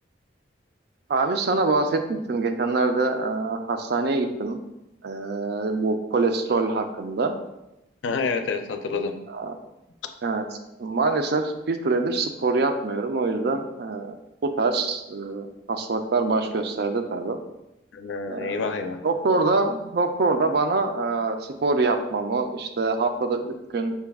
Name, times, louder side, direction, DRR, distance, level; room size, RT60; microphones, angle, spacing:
voice 1, 1.1-4.6 5.0-7.4 9.3-9.5 10.2-10.4 10.8-17.4 18.3-18.6 19.0-23.9, right 3 dB, 60° right, 7 dB, 0.4 m, -25 dB
voice 2, 8.0-9.2 17.9-19.0, left 4 dB, 85° left, 7 dB, 0.4 m, -28 dB
5.6 x 2.3 x 3.4 m, 0.92 s
head